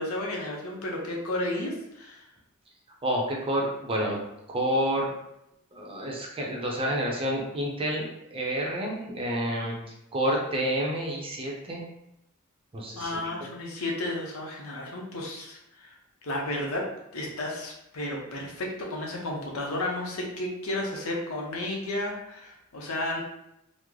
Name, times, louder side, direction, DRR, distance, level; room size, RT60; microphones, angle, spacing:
voice 1, 0.0-2.3 13.0-15.9 16.2-16.9 17.1-23.2, left 1 dB, 80° left, -1 dB, 0.8 m, -32 dB
voice 2, 3.0-5.1 5.7-9.7 10.1-11.8 12.7-13.3, equal, 25° right, -1 dB, 0.6 m, -29 dB
3.1 x 2.0 x 3.6 m, 0.83 s
head